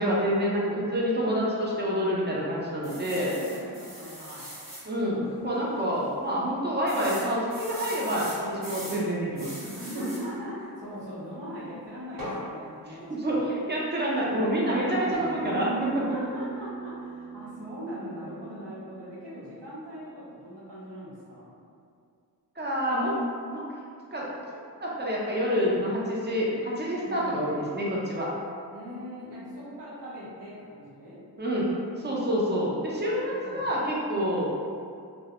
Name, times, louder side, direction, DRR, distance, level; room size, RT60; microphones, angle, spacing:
voice 1, 0.0-3.3 4.9-9.7 10.0-10.1 13.1-16.2 22.6-23.2 23.5-23.6 24.1-24.3 24.8-28.3 31.4-31.7 32.0-34.5, equal, 25° right, -5 dB, 0.6 m, -27 dB
sound 1, 2.8-4.9 5.4-5.5 5.8-5.9 6.9-9.0 9.4-10.3 12.2-12.4, equal, 55° right, 1.0 m, -40 dB
voice 2, 3.0-4.6 9.7-13.5 14.6-15.4 16.1-21.6 27.0-27.7 28.7-31.2 32.3-32.5 33.1-33.7 34.0-34.5, equal, 85° right, -8 dB, 0.8 m, -41 dB
Acoustic guitar, 15.1-20.3, right 4 dB, 15° left, 0.6 m, -40 dB
2.2 x 2.0 x 2.8 m, 2.3 s
cardioid pair, 50°, 40 cm